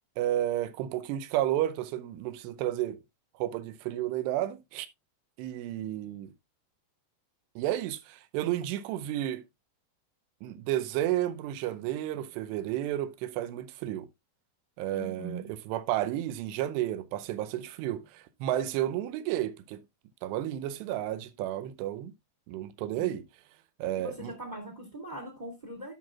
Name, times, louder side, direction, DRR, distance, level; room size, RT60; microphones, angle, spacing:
voice 1, 0.2-3.0 3.4-4.9 5.4-6.3 7.6-9.4 10.4-14.1 14.8-19.8 20.2-22.1 22.5-23.3 23.8-24.4, right 13 dB, 80° right, 2.8 m, -32 dB
voice 2, 14.9-15.5 22.9-23.1 23.9-25.9, right 1 dB, 20° right, 1.1 m, -41 dB
14.0 x 6.0 x 2.3 m
omnidirectional pair, 5.1 m